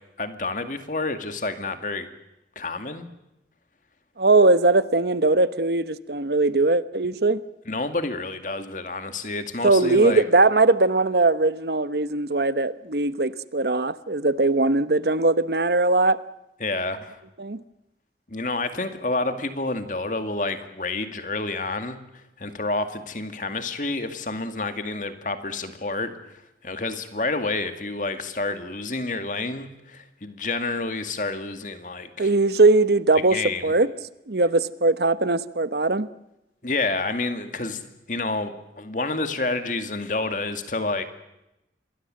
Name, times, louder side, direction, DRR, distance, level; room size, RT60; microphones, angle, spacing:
voice 1, 0.2-2.1 2.6-3.1 7.7-10.2 16.6-17.2 18.3-22.0 22.4-26.1 26.6-32.3 33.2-33.7 36.6-41.0, left 3 dB, 45° left, 8 dB, 2.2 m, -29 dB
voice 2, 4.2-7.4 9.6-16.2 17.4-17.6 32.2-33.9 34.3-36.1, right 3 dB, 70° right, 14 dB, 1.1 m, -20 dB
26.5 x 21.5 x 7.7 m, 0.89 s
head